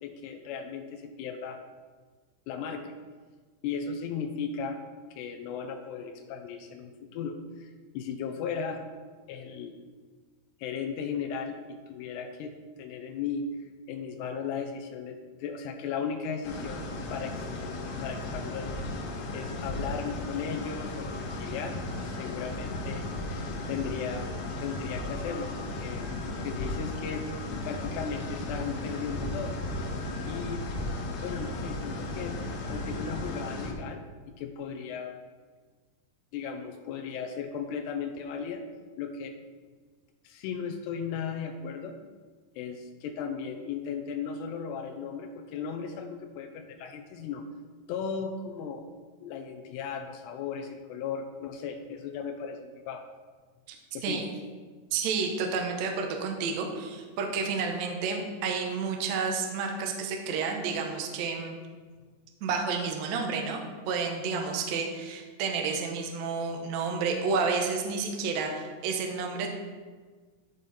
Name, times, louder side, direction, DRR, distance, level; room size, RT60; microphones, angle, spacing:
voice 1, 0.0-1.6 2.5-2.9 3.6-4.8 5.2-8.8 9.3-9.7 10.6-13.5 13.9-18.8 19.3-23.0 23.7-24.3 24.6-27.3 27.6-29.6 30.3-30.6 31.2-32.4 32.7-34.0 34.4-35.1 36.3-38.6 39.0-39.4 40.2-41.9 42.6-47.5 47.9-48.8 49.2-53.0 53.9-54.2, left 6 dB, 85° left, 4 dB, 2.8 m, -36 dB
sound 1, 16.4-33.7, left 2 dB, 70° left, 2.7 m, -35 dB
voice 2, 54.9-61.6 62.4-69.5, right 5 dB, 80° right, 2 dB, 1.5 m, -30 dB
13.0 x 5.1 x 4.2 m, 1.5 s
omnidirectional pair, 4.8 m